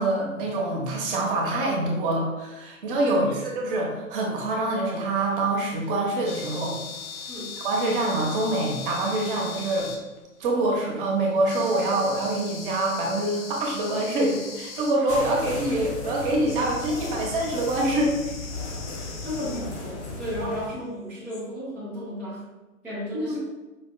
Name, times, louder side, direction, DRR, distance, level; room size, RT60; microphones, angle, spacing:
voice 1, 0.0-3.3 3.5-6.8 7.6-9.9 10.4-18.5 23.1-23.4, right 2 dB, 40° right, -1 dB, 0.9 m, -25 dB
sound 1, 5.1-10.4 11.4-15.0 16.4-19.7 21.3-21.4, left 5 dB, 75° left, 0.9 m, -40 dB
sound 2, 15.1-20.7, left 3 dB, 55° left, 1.2 m, -36 dB
voice 2, 19.2-22.4 22.8-23.4, left 1 dB, 5° right, -11 dB, 0.5 m, -33 dB
5.2 x 2.8 x 2.2 m, 1.1 s
figure-of-eight pair, 110°, 42 cm